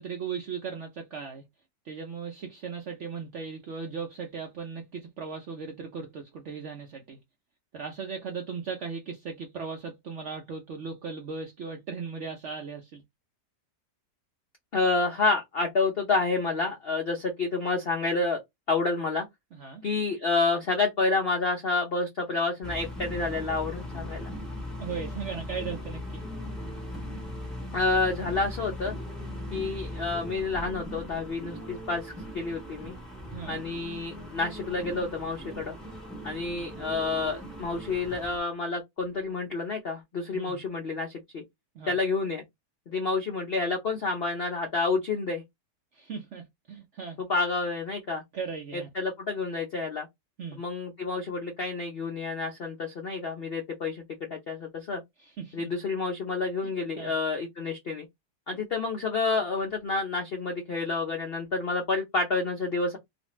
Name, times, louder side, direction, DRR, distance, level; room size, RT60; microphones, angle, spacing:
voice 1, 0.0-1.4 1.8-7.2 7.7-13.0 19.5-19.8 24.8-26.2 33.3-33.6 40.3-40.6 41.7-42.0 45.9-47.2 48.3-48.9 50.4-50.6 55.2-55.7 57.0-57.1, right 5 dB, 70° right, 0.7 m, -37 dB
voice 2, 14.7-18.4 18.7-19.2 19.8-24.3 27.7-28.9 29.5-32.9 33.5-35.8 36.2-41.4 41.9-42.4 42.9-45.4 47.2-48.2 48.7-50.1 50.5-55.0 55.5-58.0 58.5-63.0, left 3 dB, 65° left, 0.5 m, -29 dB
sound 1, 22.6-38.4, left 1 dB, ahead, 0.6 m, -39 dB
2.5 x 2.5 x 3.0 m
omnidirectional pair, 1.8 m